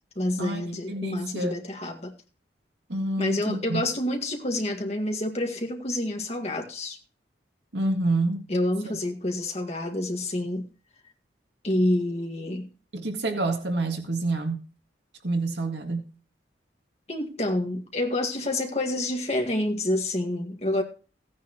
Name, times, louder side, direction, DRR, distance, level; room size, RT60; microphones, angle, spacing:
voice 1, 0.2-2.1 3.2-7.0 8.5-10.7 11.6-12.7 17.1-20.8, left 1 dB, 35° left, 1.9 m, -28 dB
voice 2, 0.9-1.6 2.9-3.8 7.7-8.5 12.9-14.6 15.2-16.1, right 2 dB, 70° right, 1.9 m, -27 dB
16.0 x 9.6 x 3.1 m
head